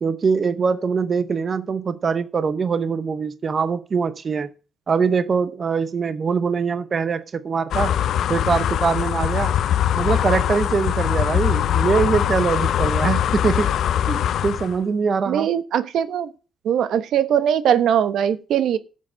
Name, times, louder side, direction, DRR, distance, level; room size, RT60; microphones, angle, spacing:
voice 1, 0.0-4.5 4.9-8.0 8.3-9.5 9.9-13.7 14.0-15.5, right 5 dB, 35° right, 0.8 m, -23 dB
Sonido Viento Fondo, 7.7-14.8, left 10 dB, 70° left, 0.6 m, -22 dB
voice 2, 15.3-16.3 16.6-18.8, right 9 dB, 75° right, 1.1 m, -20 dB
13.5 x 7.5 x 6.3 m
wide cardioid pair, 170°, 0 cm